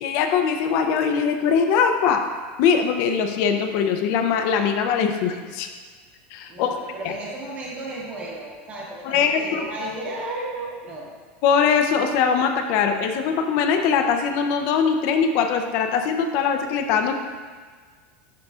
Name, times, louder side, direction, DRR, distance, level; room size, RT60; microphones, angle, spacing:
voice 1, 0.0-2.2 2.6-5.7 6.3-6.8 9.0-9.6 11.4-17.1, left 6 dB, 45° left, 6 dB, 0.5 m, -21 dB
voice 2, 6.5-11.1, right 2 dB, 20° right, -3 dB, 1.0 m, -34 dB
10.5 x 3.8 x 2.4 m, 1.5 s
supercardioid pair, 160°, 6 cm